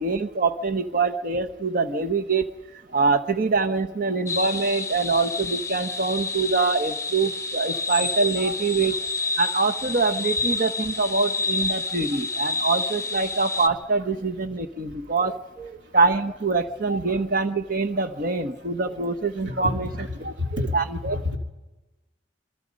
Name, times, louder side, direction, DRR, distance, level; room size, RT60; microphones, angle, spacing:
voice 1, 0.0-2.5 2.9-9.0 9.4-15.4 15.9-19.9 20.7-21.4, right 4 dB, 50° right, 8 dB, 1.3 m, -24 dB
sound 1, 4.3-13.7, left 3 dB, 15° left, 0.9 m, -29 dB
voice 2, 19.5-20.7 21.0-21.4, left 2 dB, 75° right, 3 dB, 3.0 m, -30 dB
27.5 x 22.5 x 5.4 m, 1.1 s
head